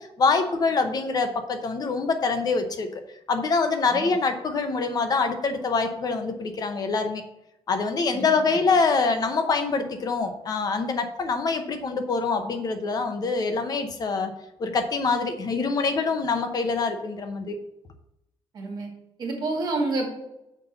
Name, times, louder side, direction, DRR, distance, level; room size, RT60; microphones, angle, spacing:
voice 1, 0.0-3.0 3.3-7.2 7.7-14.3 14.6-17.6, left 4 dB, 40° left, 7 dB, 0.8 m, -25 dB
voice 2, 8.1-8.6 18.5-18.9 19.2-20.1, right 2 dB, 40° right, 1 dB, 2.3 m, -29 dB
6.1 x 5.3 x 6.9 m, 0.86 s
cardioid pair, 175°, 10 cm